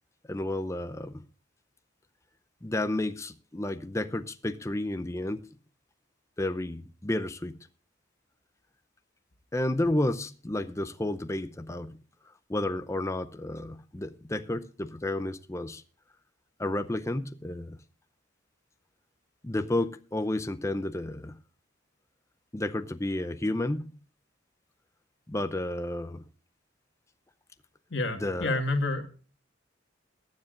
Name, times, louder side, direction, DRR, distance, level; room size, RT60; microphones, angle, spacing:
voice 1, 0.3-1.2 2.6-5.5 6.4-7.6 9.5-12.0 12.5-15.8 16.6-17.8 19.4-21.4 22.5-23.9 25.3-26.2 28.1-28.6, left 1 dB, 15° left, 0.6 m, -31 dB
voice 2, 27.9-29.1, left 2 dB, 65° left, 1.9 m, -29 dB
22.5 x 9.7 x 2.5 m
head